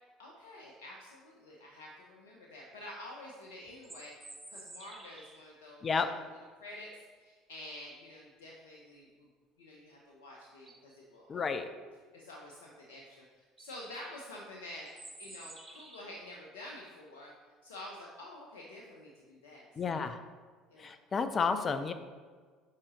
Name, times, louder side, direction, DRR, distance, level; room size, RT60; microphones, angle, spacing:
voice 1, 0.2-4.1 4.5-6.1 6.6-9.3 9.6-11.5 12.1-13.2 13.6-14.9 15.2-17.3 17.6-20.1 20.7-20.9, left 1 dB, 80° left, -2 dB, 0.7 m, -49 dB
sound 1, 3.6-5.5 10.0-10.1 10.5-10.9 13.0-13.1 13.4-13.7 14.9-16.2, right 2 dB, 15° right, 1.3 m, -51 dB
voice 2, 11.3-11.7 19.8-20.2 20.8-21.9, left 5 dB, 35° left, 10 dB, 0.5 m, -31 dB
7.2 x 4.9 x 3.0 m, 1.5 s
hypercardioid pair, 65°, 0 cm